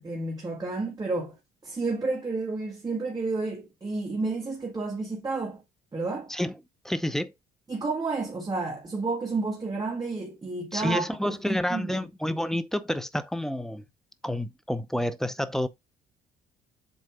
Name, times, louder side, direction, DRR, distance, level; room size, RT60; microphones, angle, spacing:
voice 1, 0.0-1.3 1.6-5.6 5.9-6.3 7.7-12.0, right 3 dB, 20° right, 1.7 m, -31 dB
voice 2, 6.8-7.3 10.7-13.8 14.2-15.7, left 1 dB, ahead, 0.6 m, -29 dB
7.8 x 2.6 x 4.8 m
cardioid pair, 110°, 17 cm